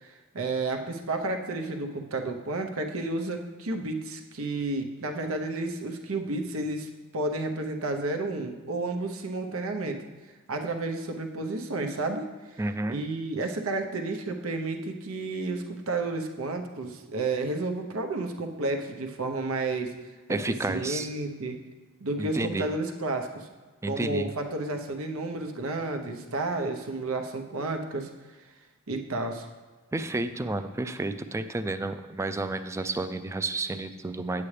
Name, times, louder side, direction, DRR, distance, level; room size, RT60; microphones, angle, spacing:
voice 1, 0.0-10.0 10.5-12.6 12.9-21.6 22.0-23.5 23.9-28.1 28.9-29.5, right 2 dB, 85° right, 4 dB, 0.8 m, -31 dB
voice 2, 12.6-13.0 20.3-21.1 22.2-22.7 23.8-24.3 29.9-34.4, right 2 dB, 15° right, 10 dB, 0.3 m, -31 dB
8.5 x 8.3 x 3.3 m, 1.3 s
head